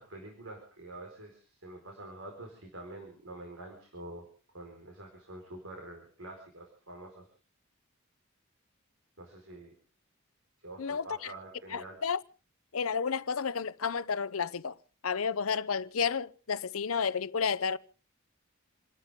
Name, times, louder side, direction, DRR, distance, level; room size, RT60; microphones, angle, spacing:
voice 1, 0.0-4.3 4.5-7.3 9.2-9.7 10.6-12.0, right 2 dB, 75° right, 4.8 m, -46 dB
voice 2, 11.7-12.2 12.7-14.7 15.0-17.8, left 6 dB, 90° left, 0.8 m, -31 dB
29.0 x 12.5 x 3.7 m
head